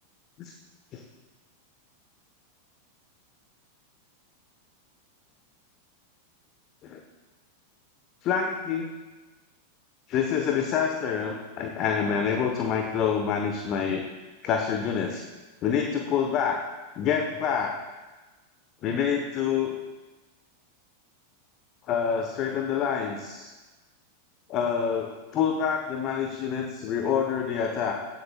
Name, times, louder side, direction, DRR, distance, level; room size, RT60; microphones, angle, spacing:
voice 1, 8.2-8.9 10.1-14.0 14.4-15.2 15.6-16.6 17.0-17.8 18.8-19.7 21.9-23.5 24.5-27.9, left 7 dB, 35° left, 4 dB, 1.1 m, -27 dB
17.5 x 13.5 x 2.3 m, 1.2 s
figure-of-eight pair, 90°, 0 cm